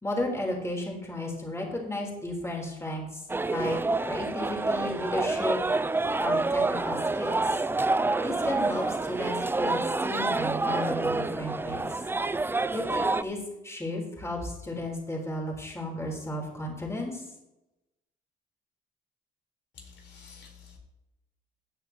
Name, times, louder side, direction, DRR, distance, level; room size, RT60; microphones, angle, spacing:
voice 1, 0.0-3.2 3.5-3.7 4.0-5.6 6.2-7.4 8.2-11.9 12.7-13.4 13.6-17.2, left 1 dB, 15° left, -1 dB, 4.0 m, -33 dB
sound 1, 3.3-13.2, right 3 dB, 10° right, 0.3 m, -28 dB
voice 2, 19.8-20.8, left 6 dB, 65° left, 0 dB, 4.4 m, -50 dB
16.0 x 9.4 x 3.1 m, 0.95 s
cardioid pair, 90°, 20 cm